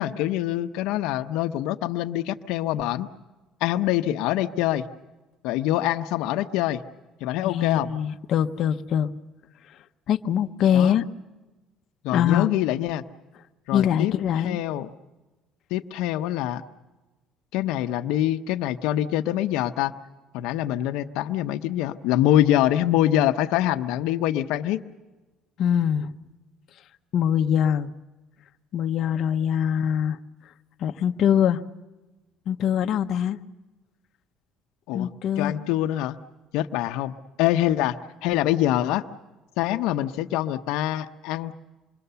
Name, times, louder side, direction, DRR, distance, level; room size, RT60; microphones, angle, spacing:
voice 1, 0.0-3.1 3.6-4.8 5.4-6.8 7.2-7.9 10.7-11.0 12.0-13.0 13.7-14.1 14.4-14.9 15.7-16.6 17.5-19.9 20.3-24.8 34.9-35.1 35.4-36.2 36.5-38.0 38.2-39.0 39.6-41.5, left 13 dB, 85° left, 9 dB, 0.8 m, -24 dB
voice 2, 7.4-9.1 10.1-11.0 12.1-12.5 13.7-14.6 25.6-26.1 27.1-27.9 28.7-30.2 30.8-31.6 32.5-33.4 34.9-35.5, left 9 dB, 50° left, 6 dB, 0.8 m, -23 dB
27.0 x 22.0 x 6.9 m, 1.1 s
cardioid pair, 145°, 0 cm